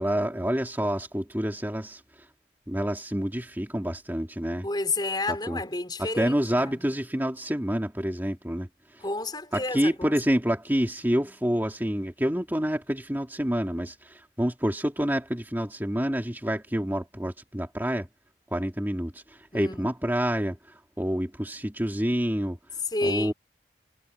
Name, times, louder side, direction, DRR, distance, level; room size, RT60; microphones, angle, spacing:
voice 1, 0.0-2.0 2.7-4.7 5.3-5.6 6.0-9.0 9.5-18.1 18.5-22.6 23.0-23.3, equal, 10° right, 2.5 m, -28 dB
voice 2, 4.6-6.9 9.0-10.1 19.5-19.9 22.9-23.3, left 2 dB, 25° left, 4.9 m, -31 dB
head